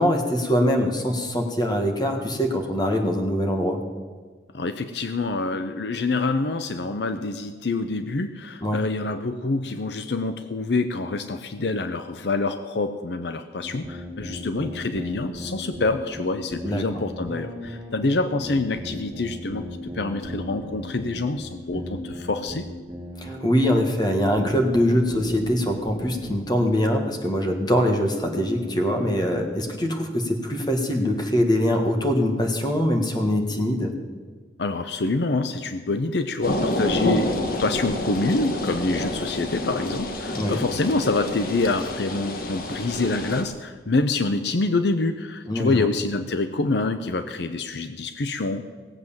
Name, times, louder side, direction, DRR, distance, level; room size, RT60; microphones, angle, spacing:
voice 1, 0.0-3.8 8.6-8.8 16.6-16.8 23.2-33.9 40.3-40.6 45.5-45.9, equal, 20° left, 3 dB, 1.6 m, -23 dB
voice 2, 4.5-22.6 34.6-48.7, left 3 dB, 70° left, 9 dB, 0.7 m, -26 dB
sound 1, 13.6-26.4, left 1 dB, 15° right, 2.4 m, -36 dB
sound 2, 36.4-43.4, left 1 dB, 50° left, 1.4 m, -28 dB
17.5 x 7.9 x 7.2 m, 1.5 s
head